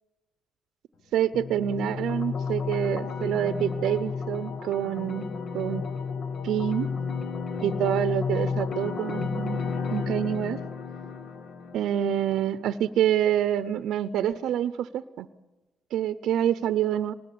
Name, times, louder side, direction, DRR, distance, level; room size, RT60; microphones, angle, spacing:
voice 1, 1.1-5.3 5.5-5.8 6.4-6.9 7.6-9.6 9.9-10.6 11.7-15.3 15.9-17.1, right 10 dB, 80° right, 13 dB, 0.7 m, -27 dB
sound 1, 1.3-12.3, left 5 dB, 60° left, 1.5 m, -32 dB
24.5 x 20.0 x 8.6 m, 1.1 s
cardioid pair, 90°, 0 cm